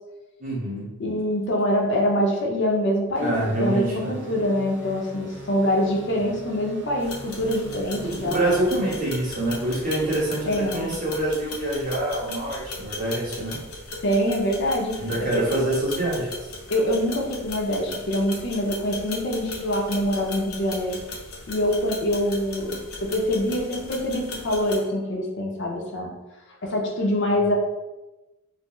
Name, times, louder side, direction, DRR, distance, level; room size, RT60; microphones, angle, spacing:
voice 1, 0.4-0.9 3.2-4.2 8.0-13.6 14.9-16.3, right 1 dB, 35° right, -8 dB, 1.4 m, -26 dB
voice 2, 1.0-8.5 10.5-10.9 14.0-15.4 16.7-21.0 21.5-26.1 26.6-27.5, equal, 55° left, 0 dB, 0.6 m, -25 dB
Technosaurus layered saws, 3.1-10.8, right 1 dB, 55° right, 0.5 m, -42 dB
sound 1, 7.0-24.8, left 3 dB, 90° left, 0.8 m, -38 dB
4.3 x 2.0 x 3.0 m, 1.0 s
head